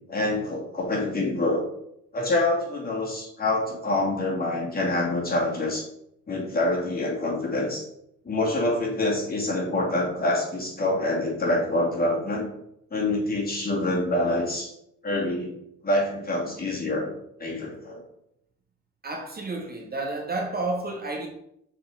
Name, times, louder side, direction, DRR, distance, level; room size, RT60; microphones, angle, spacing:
voice 1, 0.1-1.6 2.1-5.8 6.3-7.8 8.2-12.5 12.9-14.7 15.0-15.5 15.8-17.1 17.4-18.0, left 2 dB, 30° left, 2.5 m, -26 dB
voice 2, 19.0-21.3, right 2 dB, 30° right, 1.0 m, -30 dB
6.8 x 4.2 x 3.9 m
cardioid pair, 90°, 30 cm